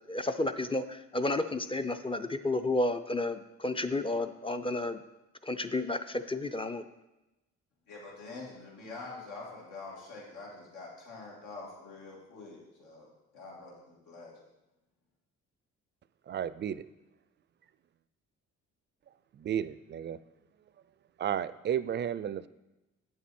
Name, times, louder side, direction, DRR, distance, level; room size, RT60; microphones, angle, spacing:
voice 1, 0.1-5.0 5.4-6.9, left 2 dB, 20° left, 9 dB, 0.5 m, -31 dB
voice 2, 7.9-13.1 13.3-14.4, left 3 dB, 90° left, -4 dB, 2.4 m, -46 dB
voice 3, 16.3-16.9 19.4-20.2 21.2-22.5, right 9 dB, 35° right, 16 dB, 0.4 m, -33 dB
8.6 x 7.4 x 4.3 m, 0.98 s
cardioid pair, 90°, 30 cm